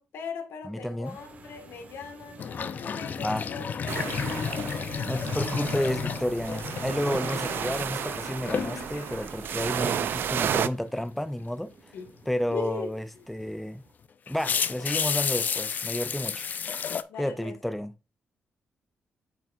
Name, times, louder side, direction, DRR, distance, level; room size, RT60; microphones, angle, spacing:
voice 1, 0.0-2.4 2.8-4.7 9.7-10.0 11.9-12.1 12.5-12.9 17.1-17.5, left 5 dB, 90° left, 2.0 m, -39 dB
voice 2, 0.6-1.2 3.2-3.5 5.1-11.7 12.3-13.8 14.3-16.8 17.2-17.9, left 1 dB, 5° left, 0.6 m, -31 dB
sound 1, 1.0-13.9, right 4 dB, 40° right, 1.5 m, -50 dB
sound 2, 2.4-9.3 9.6-10.1 13.4-13.5 14.3-17.0, left 6 dB, 50° left, 0.6 m, -32 dB
sound 3, 3.9-10.7, right 9 dB, 70° right, 0.6 m, -32 dB
8.9 x 6.0 x 2.6 m
cardioid pair, 115°, 4 cm